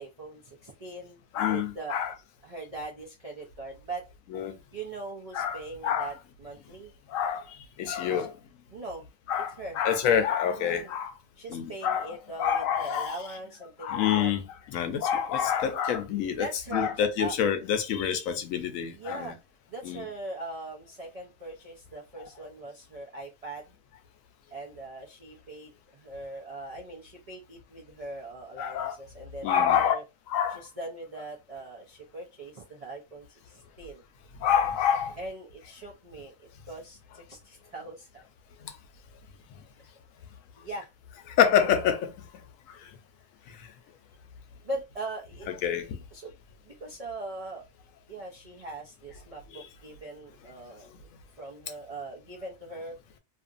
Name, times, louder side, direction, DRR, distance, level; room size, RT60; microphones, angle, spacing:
voice 1, 0.0-2.0 2.4-4.1 4.7-6.9 8.2-8.3 8.7-9.0 9.6-9.8 10.6-10.9 11.4-14.3 16.3-17.3 18.9-19.4 19.7-23.7 24.5-30.0 30.5-34.0 35.2-38.1 40.6-40.9 44.6-45.5 46.1-46.3 46.6-47.6 48.1-50.9 51.4-53.0, right 2 dB, 55° right, 0.4 m, -41 dB
voice 2, 1.3-2.1 4.3-4.6 5.3-6.1 7.1-8.3 9.3-11.1 11.5-12.1 12.4-13.2 13.8-14.4 14.7-16.5 16.7-19.3 19.8-20.1 28.6-28.9 29.4-30.0 30.3-30.6 34.4-35.2 41.4-42.1 45.6-45.9 49.5-49.6, left 8 dB, 75° left, 0.9 m, -27 dB
2.7 x 2.5 x 2.4 m
omnidirectional pair, 1.5 m